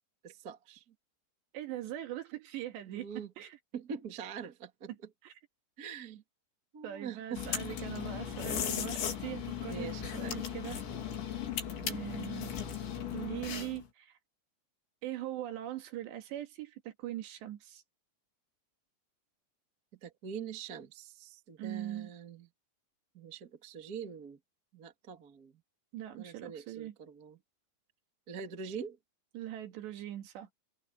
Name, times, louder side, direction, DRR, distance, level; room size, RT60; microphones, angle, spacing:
voice 1, 0.2-0.9 2.9-3.3 3.7-4.9 5.8-6.2 6.7-7.5 9.7-10.5 11.5-11.9 20.0-22.5 23.1-24.4 24.7-25.6 26.1-27.4 28.3-29.0, right 6 dB, 40° right, 1.3 m, -44 dB
voice 2, 1.5-3.1 3.4-3.6 5.2-5.3 6.8-10.8 11.8-12.6 13.1-14.2 15.0-17.8 21.6-22.1 25.9-27.0 29.3-30.5, right 13 dB, 75° right, 4.0 m, -41 dB
sound 1, 7.3-13.9, left 8 dB, 80° left, 6.0 m, -37 dB
omnidirectional pair, 5.2 m